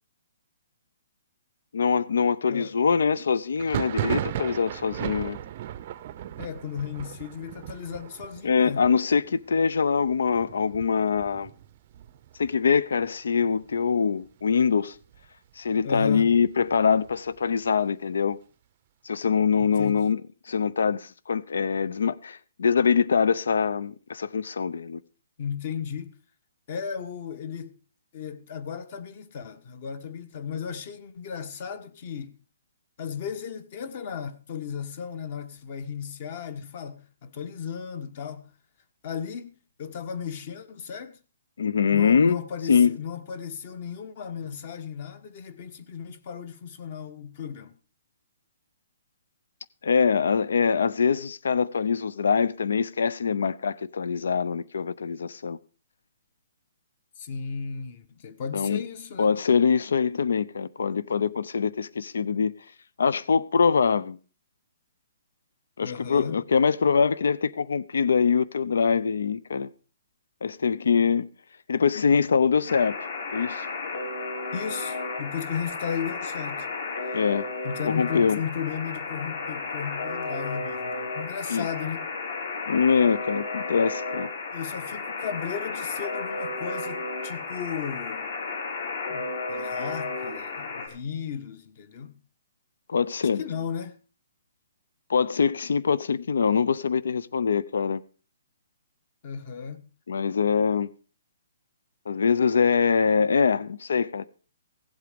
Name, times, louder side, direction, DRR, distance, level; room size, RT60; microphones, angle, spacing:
voice 1, 1.7-5.4 8.4-11.5 12.4-15.0 15.6-18.4 19.0-20.2 20.5-25.0 41.6-42.4 42.7-43.0 49.8-55.6 58.5-58.8 59.2-62.5 63.0-64.2 65.8-69.7 70.4-71.3 71.7-73.0 73.3-73.6 77.1-77.5 77.8-78.4 81.5-81.7 82.7-84.3 92.9-93.4 95.1-98.0 100.1-100.9 102.1-104.3, left 6 dB, 80° left, 0.7 m, -23 dB
Thunder, 3.6-13.1 13.3-14.0 14.3-15.3 15.7-17.4, right 11 dB, 30° right, 0.5 m, -36 dB
voice 2, 6.4-8.8 15.8-16.3 19.6-20.0 25.4-26.1 26.7-27.7 28.1-32.3 33.0-38.5 39.0-39.5 39.8-41.2 41.9-47.8 57.1-59.3 65.8-66.4 74.5-76.7 77.0-77.2 77.6-82.1 84.5-88.3 89.1-92.2 93.2-94.0 99.2-99.9, left 7 dB, 35° left, 1.2 m, -35 dB
Alarm, 72.7-90.9, left 3 dB, 50° left, 3.4 m, -33 dB
16.0 x 8.1 x 5.1 m
hypercardioid pair, 175°, 0 cm